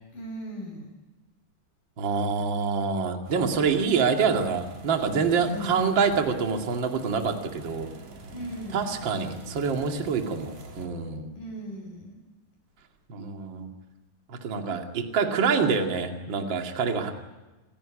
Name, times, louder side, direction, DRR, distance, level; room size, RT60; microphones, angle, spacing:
voice 1, 0.1-0.9 5.3-5.8 8.3-8.9 11.4-12.2, right 1 dB, 75° left, 3 dB, 8.0 m, -38 dB
voice 2, 2.0-7.9 8.7-11.3 13.1-13.7 14.3-17.1, right 5 dB, 35° right, 3 dB, 2.6 m, -26 dB
sound 1, 3.2-10.9, right 2 dB, 55° right, 4.3 m, -46 dB
28.0 x 17.0 x 9.9 m, 1.1 s
omnidirectional pair, 4.0 m